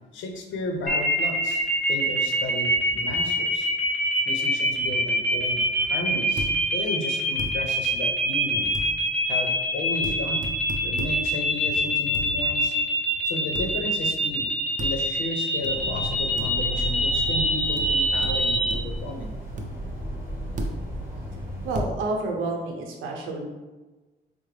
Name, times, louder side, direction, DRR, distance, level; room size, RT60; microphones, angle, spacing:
voice 1, 0.1-1.6 1.9-3.7 4.3-8.7 9.3-10.5 10.8-12.8 13.2-14.5 14.8-19.3, left 2 dB, 75° left, 4 dB, 0.6 m, -33 dB
sound 1, 0.9-18.7, equal, 5° left, 0.9 m, -24 dB
sound 2, 6.4-6.5 7.4-7.5 8.7-8.9 10.0-10.2 10.4-11.1 12.1-12.3 13.6-13.7 14.8-15.0 15.6-15.7 16.4-16.5 17.8-17.9 18.2-18.3 18.7-19.0 19.6-19.7 20.6-20.8 21.7-21.9, equal, 40° right, 0.6 m, -32 dB
sound 3, 15.7-21.8, right 1 dB, 10° right, 1.2 m, -34 dB
voice 2, 21.6-23.5, right 2 dB, 90° right, 1 dB, 0.7 m, -29 dB
4.6 x 2.0 x 3.2 m, 1.2 s
cardioid pair, 90°, 20 cm